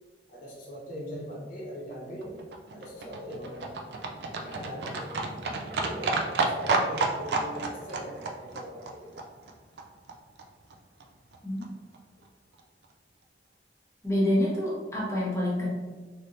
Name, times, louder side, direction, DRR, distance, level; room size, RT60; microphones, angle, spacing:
voice 1, 0.3-2.3 2.7-3.8 4.4-5.1 5.7-6.1 6.5-9.1, equal, 50° left, -7 dB, 0.9 m, -40 dB
Livestock farm animals working animals, 1.9-10.1 10.4-10.5 10.7-10.8 11.0-11.1 11.3-11.4 11.6-11.7 11.9-12.0 12.3-12.4 12.6-12.7, right 3 dB, 65° right, 0.4 m, -31 dB
voice 2, 14.0-15.7, left 1 dB, 15° left, -6 dB, 1.0 m, -27 dB
3.3 x 2.8 x 2.5 m, 1.3 s
head